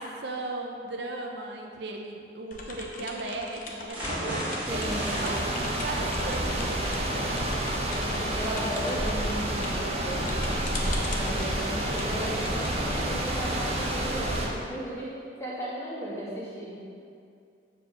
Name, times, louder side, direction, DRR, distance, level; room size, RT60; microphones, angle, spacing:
voice 1, 0.0-7.4, right 2 dB, 65° right, 2 dB, 0.7 m, -37 dB
sound 1, 2.5-14.1, left 2 dB, 45° left, 0.9 m, -41 dB
sound 2, 3.9-11.8 12.2-12.3 12.7-12.8, right 1 dB, 10° right, 2.0 m, -39 dB
voice 2, 4.7-5.2 8.0-10.3 10.8-15.1 15.4-16.8, equal, 15° left, -9 dB, 2.0 m, -35 dB
sound 3, 4.7-14.5, right 1 dB, 35° right, 0.9 m, -29 dB
7.4 x 5.0 x 6.3 m, 2.4 s
head